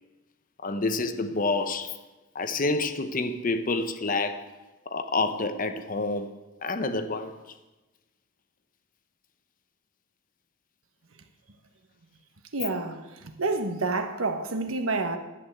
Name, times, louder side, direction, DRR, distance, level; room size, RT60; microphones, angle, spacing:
voice 1, 0.6-2.0 2.3-4.5 4.9-6.3 6.6-7.3, left 3 dB, 40° left, 0.8 m, -28 dB
voice 2, 12.5-15.2, right 3 dB, 85° right, 1.2 m, -29 dB
11.0 x 8.5 x 7.8 m
head